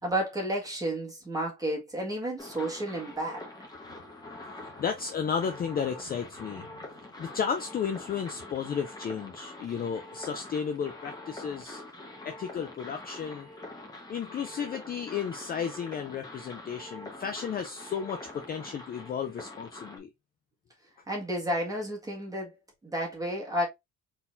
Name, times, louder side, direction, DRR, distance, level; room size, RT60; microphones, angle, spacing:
voice 1, 0.0-3.4 21.1-22.5 22.8-23.7, right 1 dB, 10° right, 1.8 m, -31 dB
sound 1, 2.4-20.0, left 2 dB, 10° left, 1.2 m, -45 dB
voice 2, 4.4-6.7 7.2-11.8 12.2-13.5 14.1-20.1, left 7 dB, 30° left, 0.5 m, -33 dB
4.0 x 4.0 x 2.6 m
cardioid pair, 155°, 32 cm